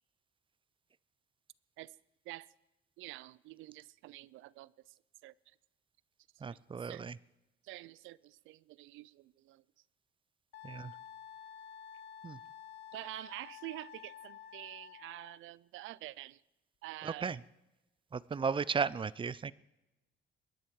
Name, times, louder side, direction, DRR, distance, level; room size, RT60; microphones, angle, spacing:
voice 1, 3.0-5.6 6.4-7.1 7.6-9.6 12.9-16.4 16.8-17.4, right 17 dB, 90° right, 0.4 m, -48 dB
voice 2, 6.4-7.1 10.6-10.9 12.2-12.4 17.0-17.4 18.1-19.5, right 5 dB, 25° right, 0.5 m, -35 dB
Wind instrument woodwind instrument, 10.5-15.4, left 9 dB, 65° left, 0.9 m, -51 dB
23.0 x 10.5 x 4.7 m
cardioid pair, 90°, 20 cm